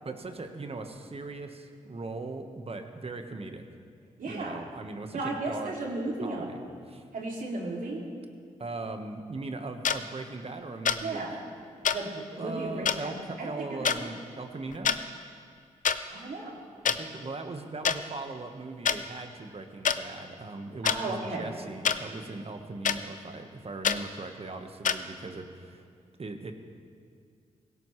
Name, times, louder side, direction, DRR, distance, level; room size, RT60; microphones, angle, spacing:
voice 1, 0.0-3.6 4.2-5.7 6.2-6.6 6.9-7.0 8.6-11.2 12.1-15.0 16.8-25.8 26.2-26.5, right 3 dB, 45° right, 6 dB, 1.3 m, -39 dB
voice 2, 4.2-4.6 5.1-6.6 7.1-8.0 11.0-11.4 11.9-12.1 12.4-13.1 13.4-14.1 16.1-16.6 20.8-21.5, right 2 dB, 75° right, -1 dB, 2.5 m, -34 dB
sound 1, 9.8-10.0 10.9-11.0 11.8-12.0 12.9-13.0 13.8-14.0 14.7-15.0 15.8-16.0 16.9-17.0 17.8-18.0 18.9-19.0 19.8-20.0 20.8-21.0 21.8-22.0 22.8-23.0 23.8-24.0 24.8-25.0, left 7 dB, 65° left, 0.6 m, -25 dB
17.5 x 16.5 x 3.2 m, 2.2 s
cardioid pair, 50°, 14 cm